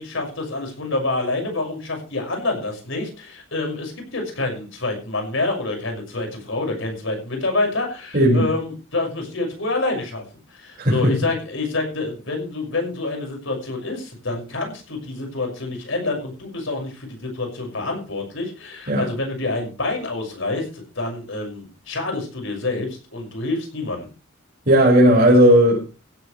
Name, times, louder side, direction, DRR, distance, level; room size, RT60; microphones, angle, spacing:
voice 1, 0.0-10.2 10.5-24.1, left 2 dB, 70° left, 3 dB, 6.4 m, -27 dB
voice 2, 8.1-8.4 10.8-11.1 18.9-19.1 24.7-25.8, equal, 45° right, -5 dB, 5.8 m, -14 dB
16.5 x 14.0 x 3.4 m, 0.34 s
head